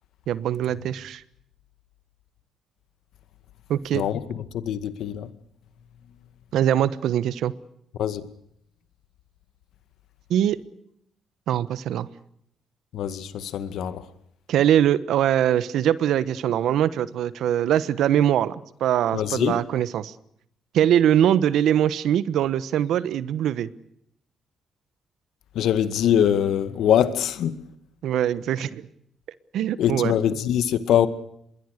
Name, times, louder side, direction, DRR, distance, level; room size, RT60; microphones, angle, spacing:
voice 1, 0.3-1.2 3.7-4.0 6.5-7.5 10.3-10.6 11.5-12.1 14.5-20.1 20.7-23.7 28.0-28.9 29.5-30.1, right 10 dB, 80° right, 1.2 m, -22 dB
voice 2, 4.5-5.3 8.0-8.2 12.9-14.0 19.1-19.6 25.6-27.5 29.8-31.1, left 10 dB, 75° left, 2.0 m, -23 dB
27.0 x 22.0 x 6.7 m
cardioid pair, 90°, 0 cm